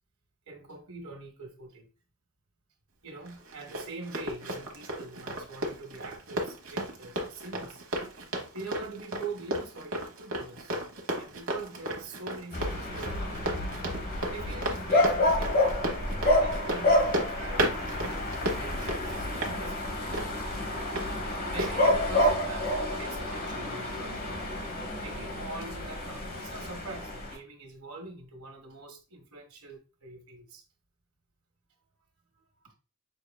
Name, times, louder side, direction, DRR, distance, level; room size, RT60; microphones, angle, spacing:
voice 1, 0.5-1.9 3.0-7.8 8.5-10.8 11.1-13.6 14.3-15.8 16.3-20.9 21.5-24.2 25.0-30.6 32.6-32.7, right 3 dB, 85° right, 1.5 m, -44 dB
Run, 3.3-21.1 21.6-21.7, right 1 dB, 70° right, 1.2 m, -34 dB
sound 1, 12.5-27.4, left 1 dB, 45° left, 1.2 m, -29 dB
6.2 x 3.6 x 2.3 m
head